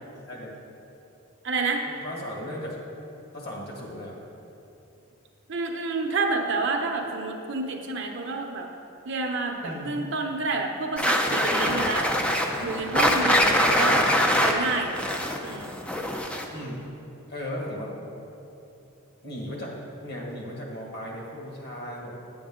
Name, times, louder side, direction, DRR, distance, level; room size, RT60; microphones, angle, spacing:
voice 1, 0.2-0.5 1.9-2.8 3.3-4.2 9.6-10.0 12.5-12.7 13.4-14.0 16.5-16.8 17.3-17.9 19.2-19.8 20.0-22.2, left 1 dB, 50° left, -2 dB, 1.7 m, -36 dB
voice 2, 1.4-1.8 5.5-8.7 9.0-12.2 12.6-14.0 14.4-15.0 15.4-15.8, right 3 dB, 55° right, 2 dB, 0.8 m, -29 dB
sound 1, 11.0-16.6, equal, 5° left, 0.4 m, -23 dB
10.0 x 7.9 x 3.7 m, 2.8 s
head